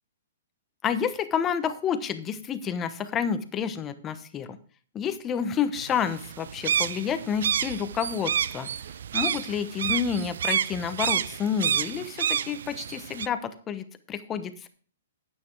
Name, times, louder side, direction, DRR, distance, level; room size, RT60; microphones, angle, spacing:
voice 1, 0.8-4.6 4.9-8.7 9.1-14.7, left 7 dB, 20° left, 11 dB, 1.0 m, -29 dB
sound 1, 5.8-13.3, right 8 dB, 70° right, 0.5 m, -29 dB
9.6 x 8.6 x 4.7 m, 0.43 s
hypercardioid pair, 150°, 0 cm